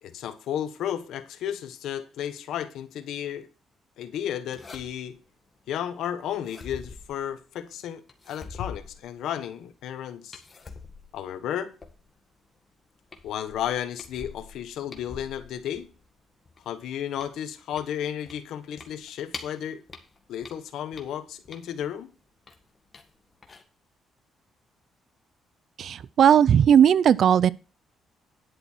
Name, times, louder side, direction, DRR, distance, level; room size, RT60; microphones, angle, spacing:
voice 1, 0.0-3.5 4.0-5.2 5.7-10.4 11.1-11.7 13.2-15.9 16.6-19.8 20.3-22.1, left 10 dB, 80° left, 1.2 m, -33 dB
sound 1, 4.5-5.2 6.3-7.6 8.1-9.4 10.3-12.3 12.7-12.8 13.1-16.1 16.5-19.6 19.9-21.9 22.5-23.1 23.4-23.6, left 4 dB, 30° left, 1.8 m, -45 dB
voice 2, 25.8-27.5, right 9 dB, 65° right, 0.5 m, -17 dB
10.5 x 8.1 x 4.4 m
cardioid pair, 90°, 0 cm